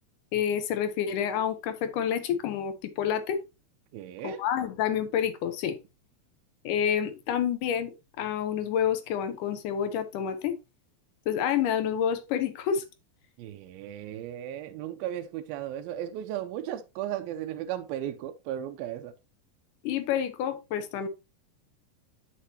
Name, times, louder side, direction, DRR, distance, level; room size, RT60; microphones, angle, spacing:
voice 1, 0.3-3.4 4.2-5.8 6.6-10.6 11.3-12.8 19.8-21.1, left 8 dB, 70° left, 2.3 m, -28 dB
voice 2, 3.9-4.4 13.4-19.2, right 11 dB, 85° right, 2.4 m, -35 dB
9.1 x 6.6 x 2.8 m
omnidirectional pair, 4.2 m